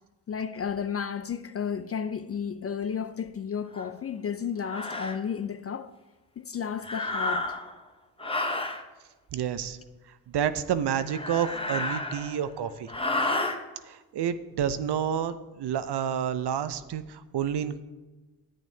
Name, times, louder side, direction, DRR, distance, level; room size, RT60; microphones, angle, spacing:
voice 1, 0.3-5.9 6.4-7.6, left 7 dB, 35° left, 0.4 m, -32 dB
sound 1, 3.7-3.9 4.6-5.2 6.8-7.7 8.2-8.8 11.0-12.4 12.9-13.6, left 2 dB, 10° left, 0.9 m, -31 dB
voice 2, 9.3-9.8 10.3-12.9 13.8-17.8, right 9 dB, 55° right, 0.7 m, -29 dB
11.0 x 8.7 x 2.8 m
supercardioid pair, 50°, 48 cm